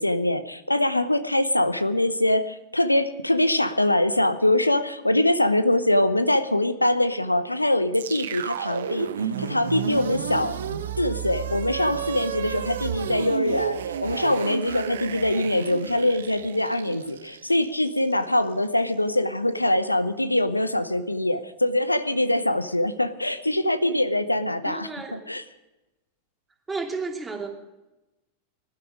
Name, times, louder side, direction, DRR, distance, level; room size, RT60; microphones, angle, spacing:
voice 1, 0.0-10.6 11.0-25.4, left 1 dB, 85° left, 13 dB, 0.8 m, -23 dB
sound 1, 7.9-18.1, right 8 dB, 65° right, 1.0 m, -32 dB
voice 2, 24.6-25.1 26.7-27.5, right 4 dB, 10° right, 2 dB, 2.8 m, -32 dB
20.5 x 12.0 x 4.8 m, 1.0 s
figure-of-eight pair, 90°, 0 cm